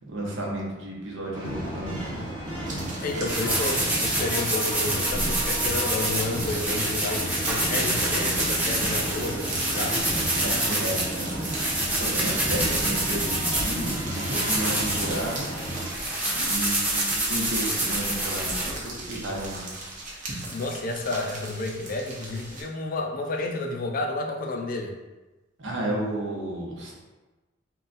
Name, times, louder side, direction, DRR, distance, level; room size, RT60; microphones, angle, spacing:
voice 1, 0.0-2.2 10.4-11.3 12.0-16.0 16.3-19.6 25.6-26.9, right 1 dB, 70° right, -3 dB, 1.0 m, -32 dB
sound 1, 1.3-15.9, right 1 dB, 25° right, 1.2 m, -33 dB
sound 2, 2.7-22.6, right 2 dB, 40° right, 0.8 m, -38 dB
voice 2, 3.0-10.1 20.5-24.9, left 2 dB, 50° left, 2 dB, 0.4 m, -31 dB
sound 3, 3.3-18.7, right 1 dB, 10° right, 0.8 m, -27 dB
3.8 x 2.3 x 3.9 m, 1.1 s
head